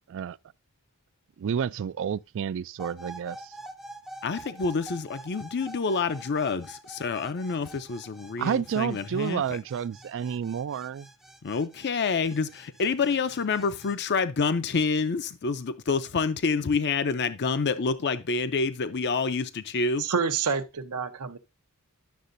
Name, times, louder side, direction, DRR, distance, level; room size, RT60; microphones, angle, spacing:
voice 1, 1.4-3.5 8.4-11.1, right 8 dB, 60° right, 0.3 m, -30 dB
sound 1, 2.8-14.0, right 1 dB, ahead, 0.6 m, -46 dB
voice 2, 4.2-9.4 11.4-20.0, left 4 dB, 50° left, 0.6 m, -27 dB
voice 3, 20.0-21.4, right 5 dB, 90° right, 0.8 m, -28 dB
11.5 x 6.6 x 2.6 m
head